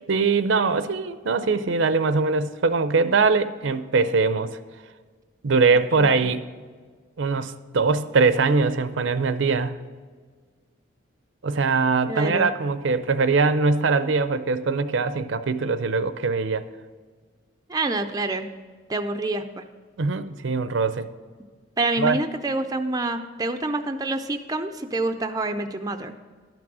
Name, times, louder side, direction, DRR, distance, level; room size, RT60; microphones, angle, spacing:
voice 1, 0.1-4.5 5.4-6.4 7.2-9.7 11.4-16.6 20.0-21.1 22.0-22.2, right 4 dB, 70° right, 12 dB, 0.5 m, -22 dB
voice 2, 12.1-12.5 17.7-18.5 18.9-19.6 21.8-26.1, right 2 dB, 20° right, 6 dB, 0.4 m, -27 dB
12.0 x 6.1 x 6.1 m, 1.5 s
head